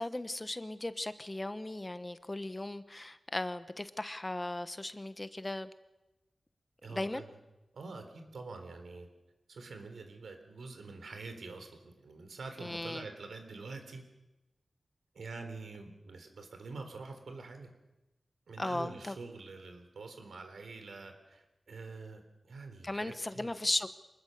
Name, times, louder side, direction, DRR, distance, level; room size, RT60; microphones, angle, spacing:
voice 1, 0.0-5.7 6.9-7.2 12.6-13.1 18.6-19.1 22.8-23.9, left 1 dB, 20° left, 12 dB, 1.0 m, -37 dB
voice 2, 6.8-7.4 7.7-9.1 9.5-14.0 15.1-17.7 18.5-23.5, right 3 dB, 90° right, 6 dB, 3.8 m, -46 dB
25.5 x 20.5 x 6.7 m, 0.99 s
wide cardioid pair, 90°, 0 cm